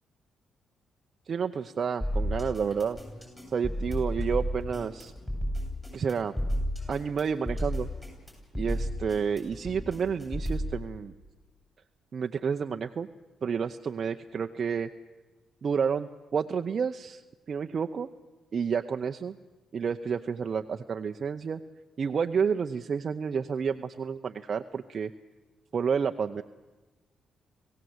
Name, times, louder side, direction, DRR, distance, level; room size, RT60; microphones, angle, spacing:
voice 1, 1.3-3.0 3.5-5.1 5.9-6.3 6.9-7.9 8.5-11.1 12.1-13.1 13.4-14.9 15.6-17.2 17.5-18.1 18.5-19.3 19.7-21.6 22.0-25.1 25.7-26.4, right 6 dB, 50° right, 6 dB, 0.7 m, -30 dB
sound 1, 2.0-10.7, equal, 15° left, 7.7 m, -32 dB
26.0 x 16.0 x 8.0 m, 1.2 s
cardioid pair, 80°, 0 cm